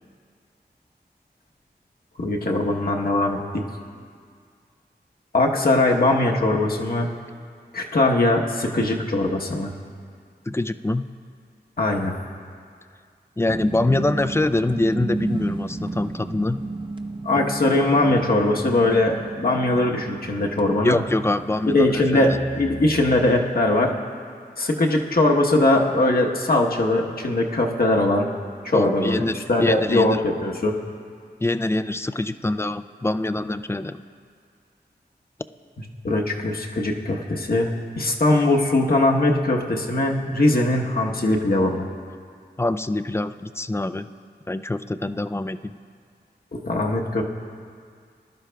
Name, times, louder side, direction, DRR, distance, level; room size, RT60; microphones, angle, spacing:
voice 1, 2.2-3.6 5.3-7.1 7.7-9.7 11.8-12.1 17.2-21.0 21.7-24.0 24.6-28.3 28.6-29.2 29.5-30.8 36.0-41.9 46.5-47.2, left 2 dB, 60° left, 0 dB, 1.1 m, -21 dB
voice 2, 10.5-11.1 13.4-16.6 20.8-22.4 28.7-30.2 31.4-34.0 42.6-44.1 44.5-45.7, left 2 dB, 15° left, 11 dB, 0.3 m, -24 dB
sound 1, 13.5-23.4, right 3 dB, 30° right, 0.7 m, -34 dB
20.0 x 11.5 x 2.3 m, 2.2 s
wide cardioid pair, 60°, 18 cm